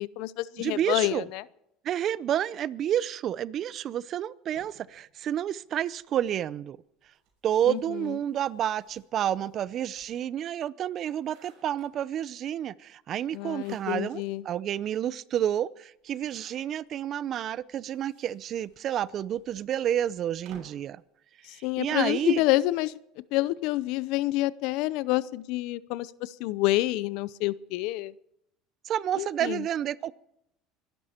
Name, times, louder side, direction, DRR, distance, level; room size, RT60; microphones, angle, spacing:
voice 1, 0.0-1.4 7.7-8.2 13.3-14.4 21.4-22.9 23.3-28.1 29.2-29.7, left 17 dB, 70° left, 0.6 m, -28 dB
voice 2, 0.6-1.3 1.8-6.8 7.4-21.0 21.5-22.4 28.8-30.2, right 10 dB, 45° right, 0.5 m, -30 dB
sound 1, 4.5-6.1 7.0-10.4 10.9-12.3 13.3-14.3 14.7-14.8 15.1-15.2 16.0-17.0 17.7-20.9, right 5 dB, 70° right, 6.3 m, -59 dB
24.5 x 11.5 x 4.4 m
supercardioid pair, 115°, 0 cm